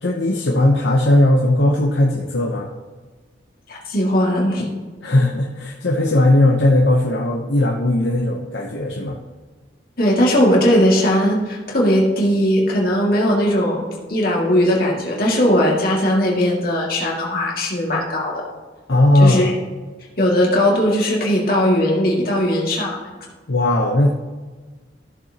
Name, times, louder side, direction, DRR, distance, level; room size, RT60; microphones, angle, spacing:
voice 1, 0.0-2.7 5.0-9.2 18.9-19.6 23.5-24.1, left 1 dB, 70° left, 0 dB, 0.9 m, -17 dB
voice 2, 3.7-4.7 10.0-13.8 14.1-18.4 19.2-19.5 20.2-23.0, equal, 50° left, -3 dB, 2.2 m, -18 dB
14.5 x 6.9 x 2.9 m, 1.4 s
head